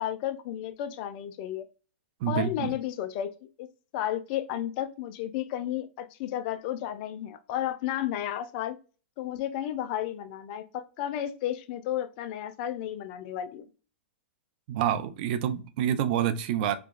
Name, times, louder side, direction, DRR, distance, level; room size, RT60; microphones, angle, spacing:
voice 1, 0.0-1.6 2.3-3.3 3.6-3.7 3.9-8.8 9.2-13.6, left 11 dB, 45° left, 0.5 m, -32 dB
voice 2, 2.2-2.8 14.7-16.8, right 10 dB, 50° right, 0.5 m, -27 dB
4.5 x 2.3 x 2.4 m
hypercardioid pair, 110°, 7 cm